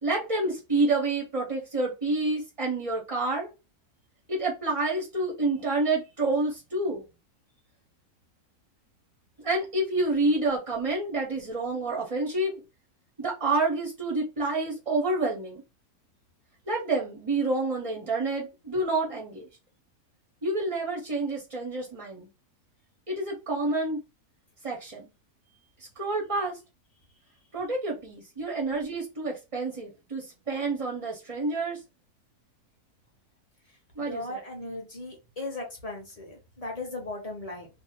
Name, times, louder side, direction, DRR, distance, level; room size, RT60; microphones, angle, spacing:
voice 1, 0.0-3.5 4.3-7.0 9.4-12.5 13.2-15.6 16.7-19.5 20.4-22.3 23.1-24.0 24.6-25.1 26.0-26.5 27.5-31.8 34.0-34.4, right 2 dB, 45° right, 0.4 m, -28 dB
voice 2, 34.0-37.7, left 2 dB, 40° left, 0.6 m, -37 dB
2.7 x 2.1 x 2.8 m
omnidirectional pair, 1.7 m